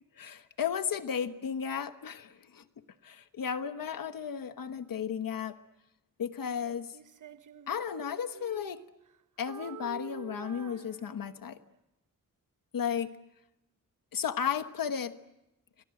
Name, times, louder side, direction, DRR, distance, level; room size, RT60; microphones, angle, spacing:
voice 1, 0.2-2.6 3.0-5.6 6.2-6.9 7.7-8.8 9.4-11.6 12.7-13.2 14.1-15.2, left 7 dB, 80° left, 9 dB, 1.3 m, -34 dB
Female singing, 6.9-9.2 9.5-11.5, right 9 dB, 65° right, 1.0 m, -48 dB
29.5 x 24.5 x 7.8 m, 0.93 s
wide cardioid pair, 175°, 33 cm